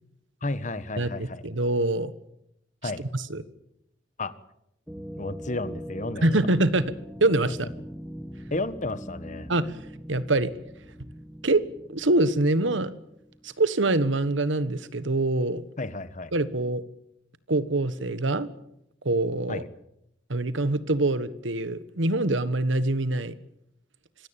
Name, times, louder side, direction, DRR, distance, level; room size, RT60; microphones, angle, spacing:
voice 1, 0.4-1.4 2.8-3.0 4.2-4.3 5.2-6.3 8.5-9.5 15.8-16.3 19.5-19.7, left 2 dB, 40° left, 13 dB, 1.4 m, -32 dB
voice 2, 1.0-2.1 2.8-3.4 6.2-6.9 7.2-7.7 9.5-9.8 10.1-10.5 11.4-11.6 11.9-12.9 13.4-15.6 16.3-16.8 17.5-18.5 19.0-19.6 20.3-23.3, right 2 dB, 85° right, 14 dB, 1.4 m, -24 dB
sound 1, 4.9-13.5, equal, 5° right, 1.9 m, -42 dB
25.5 x 17.0 x 8.9 m, 0.80 s
head